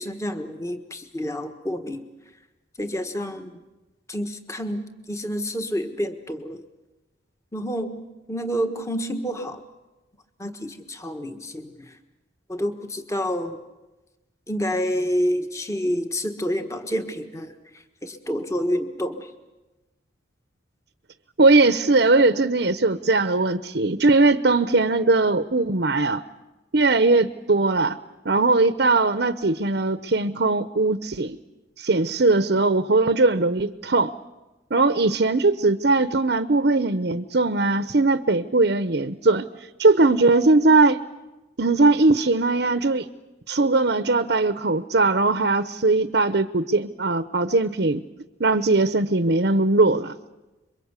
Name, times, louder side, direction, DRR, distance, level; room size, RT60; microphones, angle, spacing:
voice 1, 0.0-2.0 2.8-3.6 4.1-6.6 7.5-8.0 8.3-9.6 10.4-11.9 12.5-13.6 14.5-17.5 18.0-19.3, equal, 15° left, 6 dB, 1.4 m, -28 dB
voice 2, 21.4-26.2 26.7-28.0 28.2-31.4 31.8-34.1 34.7-39.5 39.8-41.0 41.6-43.1 43.5-48.0 48.4-50.1, right 3 dB, 60° right, 11 dB, 0.8 m, -20 dB
27.0 x 23.5 x 8.2 m, 1.1 s
head